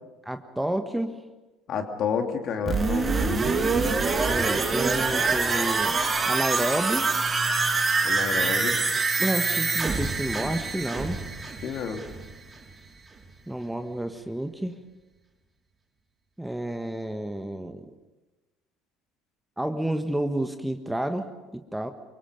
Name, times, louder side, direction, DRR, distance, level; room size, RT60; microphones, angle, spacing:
voice 1, 0.2-1.2 4.3-5.9 6.3-7.1 9.2-11.2 13.5-14.8 16.4-17.8 19.6-21.9, right 1 dB, 5° right, 8 dB, 1.6 m, -30 dB
voice 2, 1.7-3.5 8.0-8.8 11.6-12.0, left 6 dB, 45° left, 5 dB, 2.8 m, -30 dB
sound 1, 2.7-12.4 12.7-12.8, right 4 dB, 25° right, 3.4 m, -25 dB
28.0 x 25.0 x 5.3 m, 1.1 s
figure-of-eight pair, 60°, 0 cm